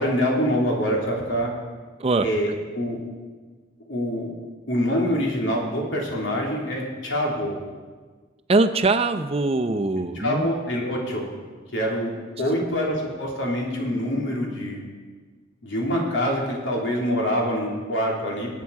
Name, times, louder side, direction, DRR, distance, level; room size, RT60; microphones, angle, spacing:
voice 1, 0.0-1.5 2.2-3.0 3.9-4.3 4.7-7.6 10.1-11.3 11.7-12.1 12.4-14.8 15.6-18.5, equal, 90° left, -2 dB, 3.3 m, -25 dB
voice 2, 8.5-10.5, right 3 dB, 35° right, 8 dB, 0.6 m, -22 dB
22.0 x 8.5 x 4.7 m, 1.4 s
head